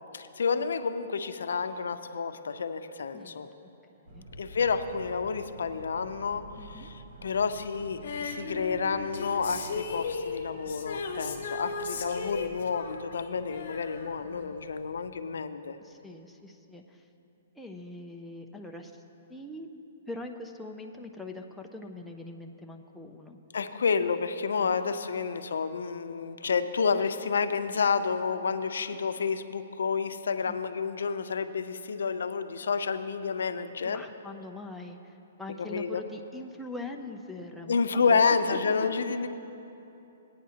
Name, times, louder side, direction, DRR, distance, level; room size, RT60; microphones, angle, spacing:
voice 1, 0.1-3.5 4.4-15.8 23.5-34.0 35.6-36.0 37.7-39.3, left 5 dB, 90° left, 10 dB, 0.5 m, -29 dB
voice 2, 3.1-3.5 4.1-4.3 6.6-6.9 12.2-12.6 14.2-14.6 15.8-17.0 17.6-18.9 19.3-19.7 20.1-23.4 24.5-24.9 30.5-30.6 33.8-38.4 38.6-38.9, left 2 dB, ahead, 0 dB, 0.3 m, -43 dB
sound 1, 4.1-15.1, right 1 dB, 55° right, 1.0 m, -49 dB
Female singing, 8.0-14.6 14.9-15.0, left 4 dB, 50° left, 0.8 m, -37 dB
18.0 x 9.2 x 2.8 m, 2.9 s
hypercardioid pair, 175°, 0 cm